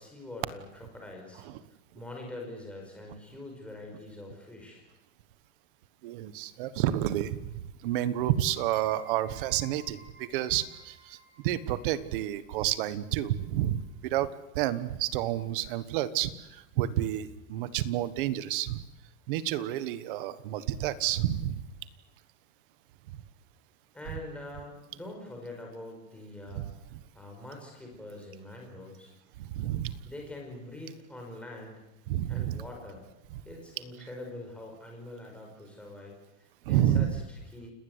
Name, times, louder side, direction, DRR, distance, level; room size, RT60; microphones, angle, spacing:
voice 1, 0.0-1.4 1.9-4.8 23.9-26.6 27.1-29.1 30.0-31.8 32.3-33.1 33.4-37.7, left 1 dB, 5° left, 0 dB, 5.3 m, -44 dB
voice 2, 6.0-11.2 11.4-14.3 14.5-18.8 19.3-21.6 26.6-26.7 29.4-30.0 32.1-32.6 36.7-37.1, right 12 dB, 40° right, 15 dB, 1.3 m, -30 dB
sound 1, 8.6-14.0, right 3 dB, 20° right, 4.0 m, -56 dB
29.0 x 19.5 x 8.1 m, 0.94 s
supercardioid pair, 180°, 40 cm